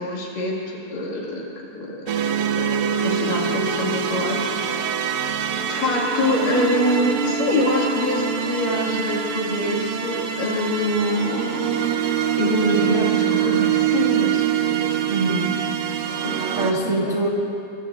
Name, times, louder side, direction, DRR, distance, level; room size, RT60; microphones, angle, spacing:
voice 1, 0.0-1.4 1.7-4.9 5.7-12.0 12.4-15.0 15.9-17.1, left 1 dB, 65° left, -3 dB, 3.7 m, -25 dB
sound 1, 2.1-16.7, right 8 dB, 85° right, 1.5 m, -24 dB
voice 2, 12.8-13.2 15.1-15.6 16.5-17.3, right 2 dB, 55° right, -3 dB, 0.8 m, -24 dB
25.0 x 22.0 x 2.5 m, 2.6 s
omnidirectional pair, 4.3 m